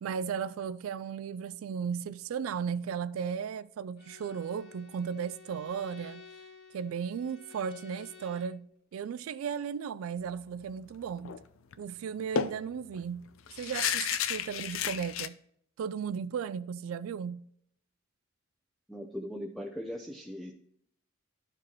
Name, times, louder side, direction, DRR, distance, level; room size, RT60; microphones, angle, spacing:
voice 1, 0.0-6.2 6.7-8.7 8.9-11.4 11.8-13.3 13.6-15.4 15.8-17.4, right 7 dB, 85° right, 0.3 m, -35 dB
Bowed string instrument, 4.0-8.6, left 5 dB, 55° left, 2.1 m, -52 dB
sound 1, 11.2-11.4 11.7-11.8 12.4-15.3, left 8 dB, 75° left, 0.4 m, -32 dB
voice 2, 18.9-20.5, equal, ahead, 0.5 m, -39 dB
12.5 x 4.8 x 2.9 m
head